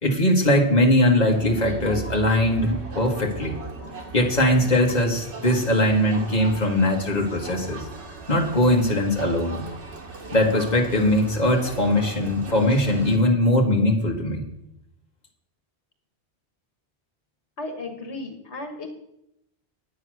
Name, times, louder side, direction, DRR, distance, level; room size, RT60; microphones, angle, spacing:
voice 1, 0.0-3.6 4.1-7.8 8.3-9.6 10.3-14.4, left 1 dB, 40° left, 0 dB, 1.9 m, -21 dB
Crowd, 1.3-13.2, right 4 dB, 85° right, 1.8 m, -38 dB
voice 2, 17.6-18.9, left 2 dB, 85° left, 5 dB, 1.7 m, -34 dB
9.6 x 8.5 x 6.3 m, 0.80 s
omnidirectional pair, 1.1 m